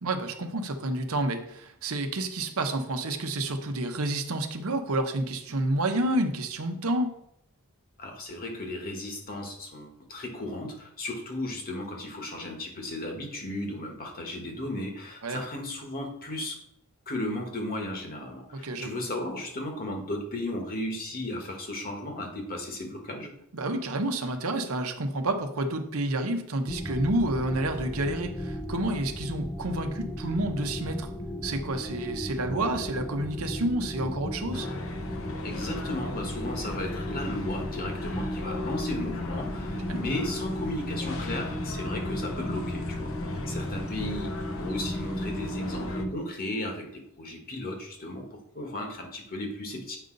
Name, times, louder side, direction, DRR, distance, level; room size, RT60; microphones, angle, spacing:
voice 1, 0.0-7.1 15.2-15.4 18.5-19.0 23.5-31.1 31.4-34.7 39.9-40.0, right 1 dB, 70° right, 6 dB, 0.9 m, -29 dB
voice 2, 8.0-16.6 17.1-23.3 35.4-50.0, left 1 dB, 45° left, 2 dB, 1.5 m, -35 dB
sound 1, 26.7-46.1, left 1 dB, 10° left, 0.4 m, -35 dB
sound 2, 34.5-46.0, left 3 dB, 65° left, 0.8 m, -40 dB
8.0 x 5.3 x 3.9 m, 0.74 s
head